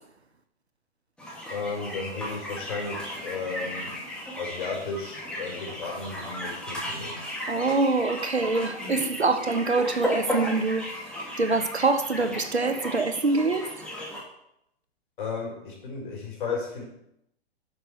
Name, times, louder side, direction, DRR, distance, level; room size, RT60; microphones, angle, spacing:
sound 1, 1.2-14.2, equal, 5° left, 2.4 m, -35 dB
voice 1, 1.5-4.0 4.4-7.2 15.2-16.8, left 4 dB, 50° left, 4.4 m, -34 dB
voice 2, 7.5-10.8 11.4-13.6, right 3 dB, 80° right, 1.2 m, -25 dB
10.5 x 6.9 x 4.6 m
figure-of-eight pair, 115°, 32 cm